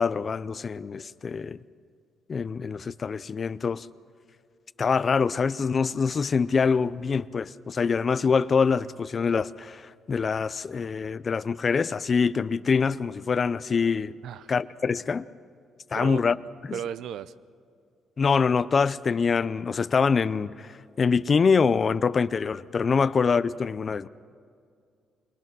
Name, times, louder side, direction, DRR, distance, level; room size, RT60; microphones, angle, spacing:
voice 1, 0.0-1.6 2.3-3.9 4.8-14.1 14.5-15.2 15.9-16.4 18.2-24.1, left 5 dB, 40° left, 0.5 m, -25 dB
voice 2, 15.9-16.4 16.7-17.3 22.9-23.0, right 9 dB, 80° right, 0.6 m, -35 dB
24.5 x 19.5 x 6.1 m
cardioid pair, 90°, 0 cm